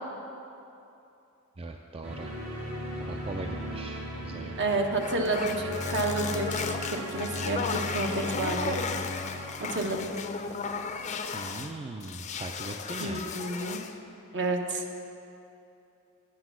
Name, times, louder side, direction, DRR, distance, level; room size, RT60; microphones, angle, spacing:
voice 1, 1.6-2.4 2.9-4.6 11.3-13.3, right 2 dB, 25° right, 3 dB, 0.4 m, -40 dB
sound 1, 2.0-10.9, equal, 70° right, 2.4 m, -37 dB
voice 2, 4.6-6.5 6.9-8.8 9.6-10.1 13.0-13.8 14.3-14.8, right 2 dB, 55° right, 3 dB, 1.0 m, -30 dB
sound 2, 5.0-11.7 12.0-14.0, left 5 dB, 35° left, 0.5 m, -35 dB
9.7 x 8.0 x 6.1 m, 2.8 s
head